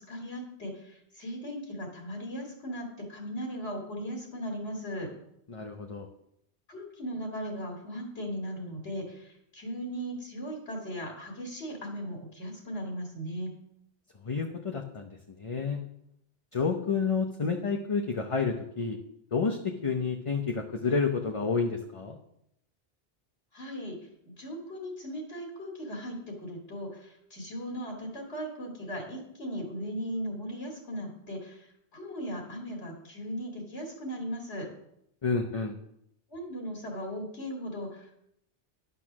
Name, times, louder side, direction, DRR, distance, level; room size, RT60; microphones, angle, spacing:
voice 1, 0.1-5.1 6.7-13.5 23.5-24.0 24.3-34.7 36.3-38.2, equal, 70° left, -1 dB, 2.4 m, -38 dB
voice 2, 5.5-6.1 14.2-15.1 15.4-15.8 16.5-19.0 19.3-22.2 35.2-35.8, left 5 dB, 35° left, 3 dB, 0.7 m, -29 dB
11.0 x 6.3 x 6.1 m, 0.77 s
omnidirectional pair, 1.1 m